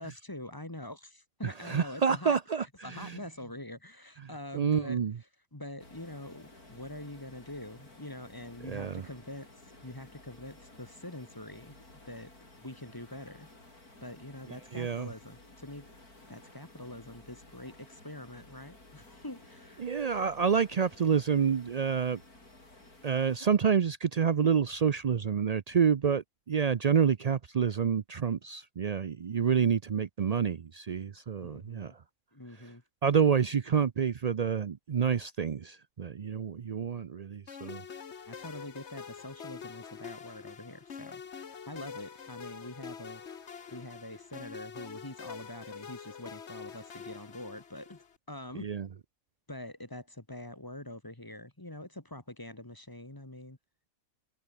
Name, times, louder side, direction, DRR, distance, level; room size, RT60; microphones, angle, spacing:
voice 1, 0.0-2.4 2.8-5.0 5.5-9.5 9.8-11.8 12.1-12.3 12.6-13.5 14.0-15.9 16.3-19.9 31.4-32.0 32.3-32.8 38.3-41.4 41.7-43.2 43.7-48.7 49.5-53.6, left 1 dB, 15° left, 2.1 m, -44 dB
voice 2, 1.4-3.1 4.5-5.1 8.7-9.0 14.7-15.1 19.8-22.2 23.0-31.9 33.0-37.8 48.6-48.9, right 7 dB, 80° right, 0.3 m, -28 dB
sound 1, 5.8-23.4, left 2 dB, 90° left, 7.4 m, -55 dB
sound 2, 37.5-48.2, left 6 dB, 50° left, 1.5 m, -46 dB
omnidirectional pair, 1.5 m